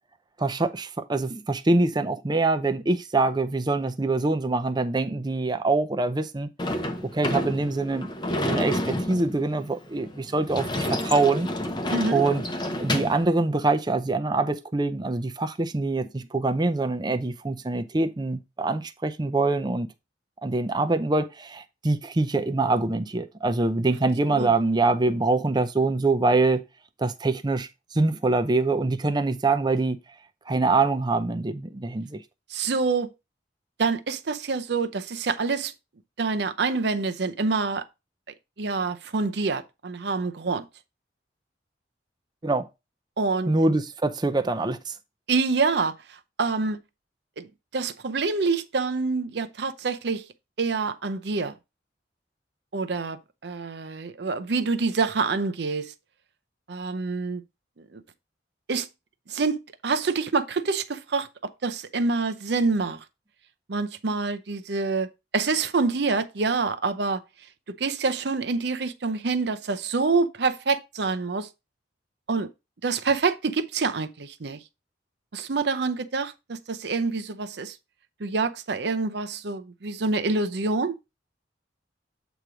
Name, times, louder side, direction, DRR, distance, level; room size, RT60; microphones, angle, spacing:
voice 1, 0.4-6.5 7.0-8.1 8.4-11.5 12.1-12.4 12.8-19.9 20.4-26.7 27.0-30.0 30.5-32.2 42.4-42.7 43.5-44.9, right 3 dB, 25° right, 0.6 m, -24 dB
Sliding door / Slam, 6.6-13.3, left 1 dB, 25° left, 0.8 m, -29 dB
voice 2, 11.9-12.2 24.3-24.5 32.5-33.1 33.8-35.7 36.2-37.8 38.6-40.7 43.2-43.5 45.3-46.0 46.4-46.8 47.4-47.5 47.7-50.3 50.6-51.5 52.7-55.9 56.7-57.4 57.8-58.0 58.7-58.9 59.3-63.0 63.7-65.1 65.3-67.2 67.8-71.5 72.3-72.5 72.8-74.6 75.3-77.8 78.2-81.0, right 4 dB, 65° right, 0.6 m, -26 dB
8.0 x 3.1 x 4.9 m
head